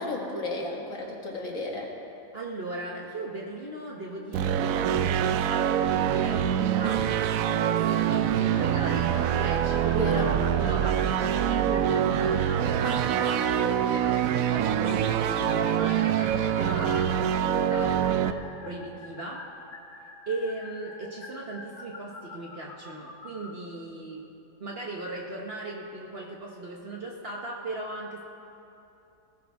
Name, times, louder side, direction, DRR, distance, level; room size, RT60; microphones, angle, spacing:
voice 1, 0.0-1.9 9.9-10.3, left 1 dB, 65° left, -2 dB, 2.3 m, -32 dB
voice 2, 2.3-19.5 20.3-24.3 24.6-28.2, right 2 dB, 45° right, -1 dB, 1.2 m, -38 dB
sound 1, 4.3-18.3, right 9 dB, 75° right, 1.0 m, -25 dB
sound 2, 8.6-23.5, left 3 dB, 40° left, 1.3 m, -46 dB
20.0 x 14.5 x 3.5 m, 2.7 s
omnidirectional pair, 1.5 m